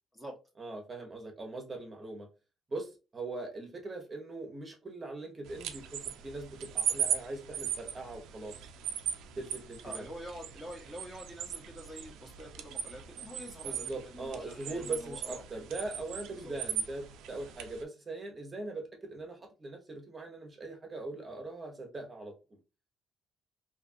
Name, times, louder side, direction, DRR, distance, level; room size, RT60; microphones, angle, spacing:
voice 1, 0.6-2.3 2.7-8.5 9.4-10.1 13.6-22.6, right 2 dB, 25° right, 0.8 m, -41 dB
sound 1, 5.5-17.8, right 9 dB, 80° right, 0.4 m, -38 dB
voice 2, 9.8-15.4 16.3-16.5, equal, 10° left, 0.9 m, -46 dB
2.6 x 2.5 x 2.5 m
cardioid pair, 110°, 0 cm